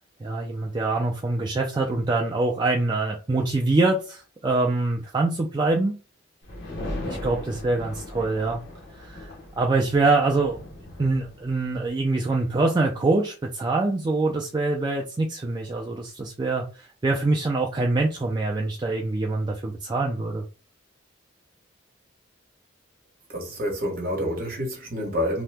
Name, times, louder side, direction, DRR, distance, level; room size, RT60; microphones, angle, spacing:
voice 1, 0.2-6.0 7.1-8.6 9.0-9.3 9.6-10.6 11.0-20.4, right 2 dB, 20° right, 0.3 m, -24 dB
sound 1, 6.4-11.9, left 1 dB, 60° left, 1.0 m, -38 dB
voice 2, 23.3-25.4, equal, 50° right, 1.0 m, -28 dB
2.8 x 2.1 x 3.3 m
head